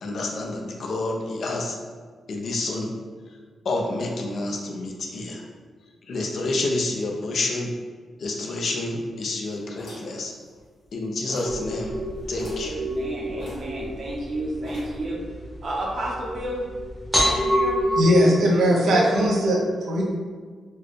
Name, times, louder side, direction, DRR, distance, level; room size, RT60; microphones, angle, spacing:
voice 1, 0.0-1.8 2.3-2.9 3.6-5.4 6.1-7.7 8.2-10.3 10.9-12.0 12.3-12.7, left 2 dB, 50° left, 1 dB, 0.5 m, -28 dB
sound 1, 9.8-11.0 11.3-11.7 12.0-12.1 12.3-12.7 13.4-14.2 14.6-15.1, left 1 dB, 90° left, 1.2 m, -43 dB
sound 2, 11.5-18.0, equal, 10° left, 0.9 m, -28 dB
voice 2, 12.6-15.2 15.6-16.7 17.1-19.3, right 1 dB, 45° right, -4 dB, 0.6 m, -32 dB
voice 3, 18.0-20.0, equal, 85° right, -2 dB, 0.6 m, -19 dB
4.4 x 2.1 x 3.1 m, 1.5 s
wide cardioid pair, 160°, 0 cm